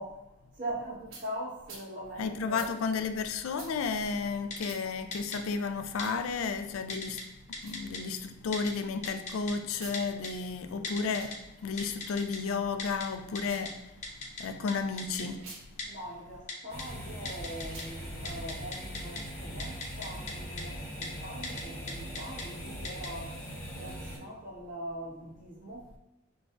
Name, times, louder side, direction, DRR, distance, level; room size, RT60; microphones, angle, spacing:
voice 1, 0.0-2.6 15.9-23.4 23.7-26.0, right 1 dB, 40° right, 1.2 m, -42 dB
sound 1, 1.1-1.3 1.6-1.9 2.5-2.7 3.5-3.7 4.6-4.8 5.9-6.2 7.5-7.8 9.7-10.0 11.0-11.3 13.3-13.7 15.3-15.6 17.6-17.9, right 3 dB, 90° right, 0.9 m, -47 dB
voice 2, 2.2-7.2 7.6-13.8 14.4-15.5, left 5 dB, 85° left, 0.4 m, -32 dB
Typing, 4.5-4.7 5.1-5.4 6.0-6.1 6.9-7.2 7.5-8.0 8.5-8.7 9.0-9.5 9.9-10.3 10.8-11.4 11.8-12.4 12.8-13.1 13.4-13.5 13.7-13.8 14.0-14.4 14.7-14.8 15.0-15.2 15.8-15.9 16.5-16.8 17.3-17.8 18.1-19.2 19.6-20.3 20.6-20.7 21.0-21.1 21.4-21.6 21.9-22.4 22.8-23.1, left 3 dB, 35° left, 0.7 m, -37 dB
sound 2, 16.7-24.2, equal, 15° left, 0.9 m, -41 dB
5.9 x 2.3 x 2.4 m
head